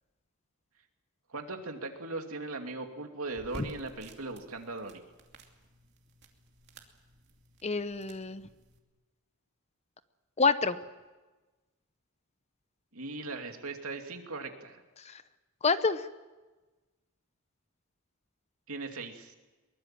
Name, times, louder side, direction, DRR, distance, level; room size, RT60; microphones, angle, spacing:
voice 1, 1.3-5.0 12.9-14.8 18.7-19.3, right 3 dB, 80° right, 4 dB, 2.7 m, -39 dB
sound 1, 3.3-8.8, right 1 dB, 50° right, 2.6 m, -53 dB
voice 2, 7.6-8.5 10.4-10.8 15.0-15.2 15.6-16.1, left 4 dB, 30° left, 13 dB, 0.8 m, -28 dB
23.0 x 21.5 x 7.6 m, 1.2 s
head